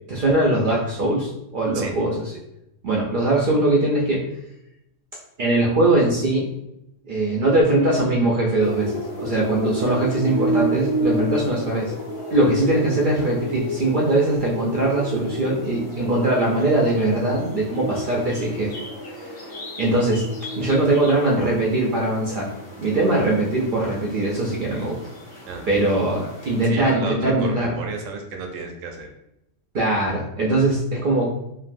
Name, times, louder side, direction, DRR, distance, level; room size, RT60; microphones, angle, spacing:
voice 1, 0.1-2.2 2.8-4.2 5.4-6.5 7.1-11.9 12.3-18.7 19.2-19.4 19.8-20.2 20.6-22.5 22.8-25.0 25.7-27.7 29.7-31.3, right 2 dB, 60° right, -3 dB, 0.5 m, -21 dB
sound 1, 8.6-26.7, right 1 dB, 55° left, 1.0 m, -32 dB
voice 2, 25.5-25.9 26.6-29.1, right 4 dB, 85° right, 3 dB, 0.9 m, -32 dB
3.0 x 2.5 x 2.5 m, 0.85 s
omnidirectional pair, 1.3 m